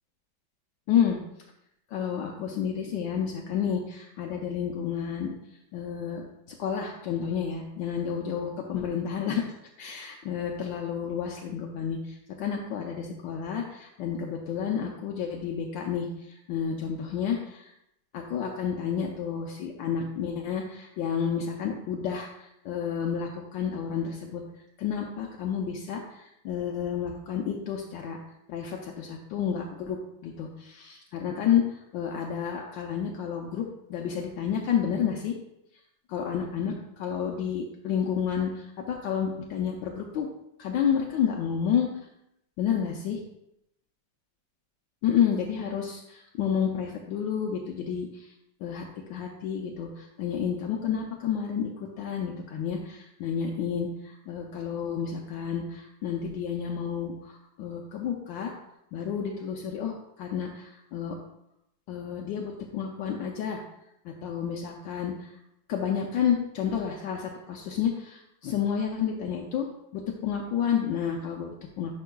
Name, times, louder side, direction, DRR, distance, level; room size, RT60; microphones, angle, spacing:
voice 1, 0.9-1.2 1.9-5.3 5.7-9.4 9.8-17.7 18.1-24.4 24.8-28.2 28.5-35.4 36.1-40.3 40.6-41.9 42.6-43.2 45.0-48.3 48.6-58.5 58.9-61.2 61.9-63.6 64.0-65.3 65.7-69.7 69.9-71.9, left 8 dB, 75° left, 1 dB, 1.3 m, -30 dB
10.0 x 5.4 x 2.3 m, 0.82 s
omnidirectional pair, 2.1 m